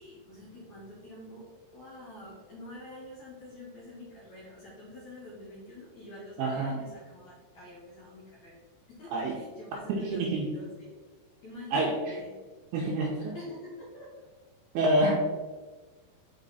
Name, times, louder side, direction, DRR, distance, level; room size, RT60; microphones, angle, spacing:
voice 1, 0.0-8.6 8.9-10.9 11.4-12.4 13.3-14.1, left 1 dB, 65° left, -7 dB, 1.9 m, -47 dB
voice 2, 6.4-6.8 9.1-9.4 9.9-10.5 11.7-12.2 12.7-13.4 14.7-15.2, right 1 dB, 85° right, -1 dB, 2.2 m, -27 dB
6.1 x 4.1 x 3.9 m, 1.3 s
omnidirectional pair, 5.1 m